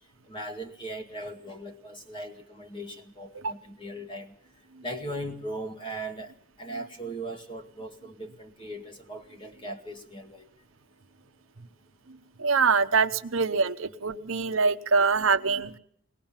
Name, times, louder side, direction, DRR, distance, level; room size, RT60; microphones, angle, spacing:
voice 1, 0.3-4.3 4.8-6.3 6.6-10.5, right 1 dB, 25° left, 4 dB, 2.1 m, -38 dB
voice 2, 12.4-15.8, right 4 dB, 75° right, 9 dB, 0.9 m, -24 dB
21.5 x 19.5 x 7.3 m, 0.66 s
head